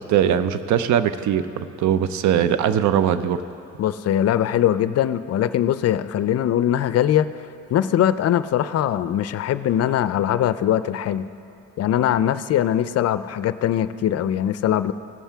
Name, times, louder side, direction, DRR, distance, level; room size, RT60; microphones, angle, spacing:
voice 1, 0.0-3.4, right 9 dB, 70° right, 12 dB, 0.6 m, -20 dB
voice 2, 3.8-7.3 7.7-11.2 11.8-14.9, left 11 dB, 55° left, 13 dB, 0.4 m, -21 dB
17.0 x 7.3 x 3.5 m, 2.6 s
cardioid pair, 90°, 30 cm